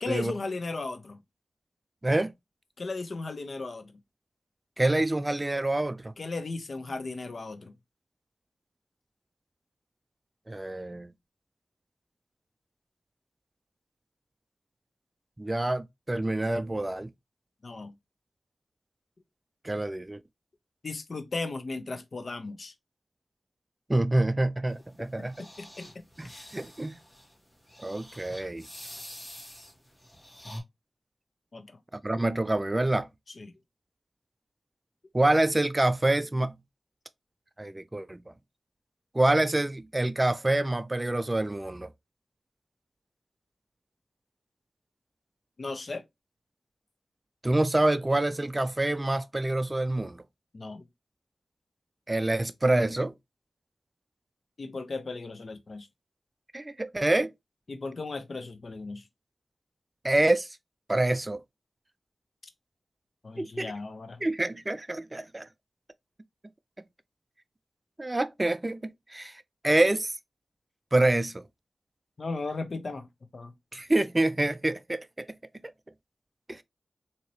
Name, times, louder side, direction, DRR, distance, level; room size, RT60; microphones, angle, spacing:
voice 1, 0.0-1.2 2.8-3.9 6.2-7.7 17.6-17.9 20.8-22.7 25.4-26.4 31.5-31.8 33.4-33.5 45.6-46.0 50.5-50.8 54.6-55.9 57.7-59.0 63.2-64.2 72.2-73.1 73.3-73.5, left 3 dB, 60° left, 0.7 m, -36 dB
voice 2, 4.8-6.1 10.5-11.1 15.4-17.1 19.6-20.2 23.9-25.4 26.2-27.0 27.8-28.7 31.9-33.1 35.1-36.5 37.6-38.2 39.1-41.9 47.4-50.2 52.1-53.1 56.5-57.3 60.0-60.5 60.9-61.4 63.4-63.7 64.2-65.5 68.0-68.8 69.1-70.2 70.9-71.4 73.7-75.3 76.5-76.6, right 2 dB, 25° right, 0.3 m, -26 dB
sound 1, 24.7-30.6, equal, 20° left, 2.1 m, -47 dB
4.0 x 2.8 x 3.1 m
wide cardioid pair, 70°, 0 cm